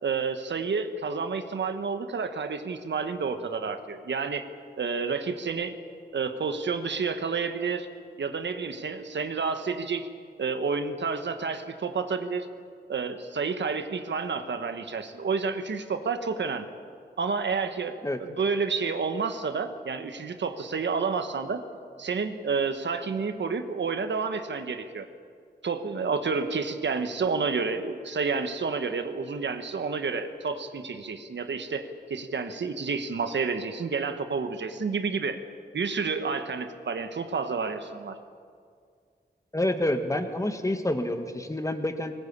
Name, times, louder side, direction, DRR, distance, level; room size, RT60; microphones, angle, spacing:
voice 1, 0.0-4.5 4.8-5.8 6.1-7.9 8.2-10.1 10.4-12.5 12.9-16.7 17.2-21.6 22.0-25.1 25.6-35.4 35.7-38.2, right 5 dB, 85° right, 8 dB, 1.4 m, -30 dB
voice 2, 39.5-42.1, left 1 dB, 20° left, 6 dB, 1.7 m, -28 dB
20.0 x 19.0 x 8.7 m, 2.1 s
wide cardioid pair, 100°, 18 cm